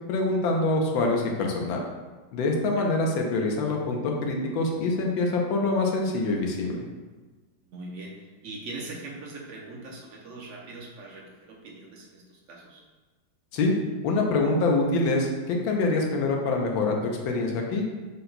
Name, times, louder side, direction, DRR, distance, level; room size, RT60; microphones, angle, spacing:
voice 1, 0.1-1.8 2.3-6.8 13.5-13.8 14.0-17.9, left 2 dB, 85° left, 1 dB, 1.5 m, -25 dB
voice 2, 7.6-12.8, right 2 dB, 65° right, -2 dB, 0.7 m, -41 dB
5.8 x 2.2 x 3.9 m, 1.3 s
omnidirectional pair, 2.1 m